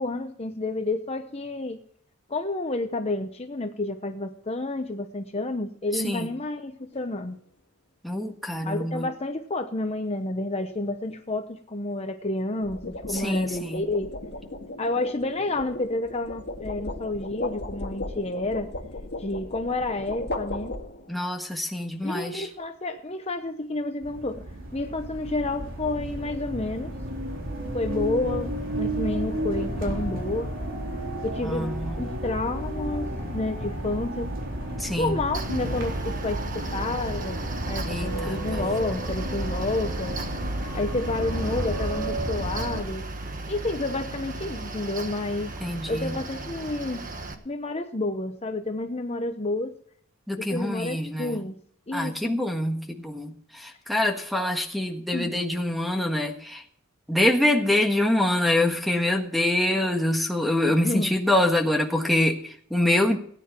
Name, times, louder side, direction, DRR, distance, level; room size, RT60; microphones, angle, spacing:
voice 1, 0.0-1.8 2.3-7.4 8.6-14.1 14.8-18.7 19.2-20.7 22.0-24.5 24.7-26.9 27.7-30.5 31.2-34.3 35.0-40.2 40.7-43.0 43.5-45.5 45.9-47.1 47.4-49.8 50.4-51.6 51.9-52.5 55.1-55.3 60.8-61.2, left 2 dB, 30° left, 6 dB, 0.9 m, -30 dB
sound 1, 6.9-7.2 12.4-21.3, left 2 dB, 50° left, 1.8 m, -36 dB
voice 2, 8.0-9.1 13.1-13.8 21.1-22.5 31.4-31.9 34.8-35.2 37.8-38.6 45.6-46.1 50.3-51.4 51.9-56.6 57.1-63.2, left 1 dB, ahead, 4 dB, 1.5 m, -25 dB
sound 2, 24.0-42.8, right 1 dB, 65° right, 3.7 m, -32 dB
Mechanical fan, 35.3-47.3, right 2 dB, 40° right, 1.4 m, -35 dB
18.0 x 9.6 x 4.5 m, 0.62 s
head